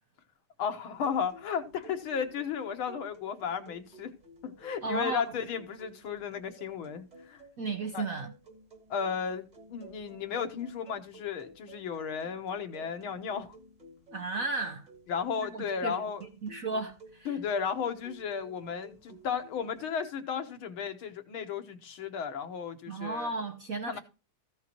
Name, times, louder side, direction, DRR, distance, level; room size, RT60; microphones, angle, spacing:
voice 1, 0.6-4.1 4.4-7.4 7.9-8.1 8.9-13.6 15.1-16.2 17.3-23.3 23.9-24.0, left 7 dB, 70° left, 2.0 m, -34 dB
sound 1, 0.9-19.8, right 2 dB, 20° right, 1.4 m, -54 dB
voice 2, 4.8-5.2 7.6-8.3 14.1-14.9 15.4-16.0 16.4-17.4 22.9-24.0, right 3 dB, 60° right, 0.9 m, -34 dB
14.5 x 5.8 x 4.5 m
omnidirectional pair, 2.4 m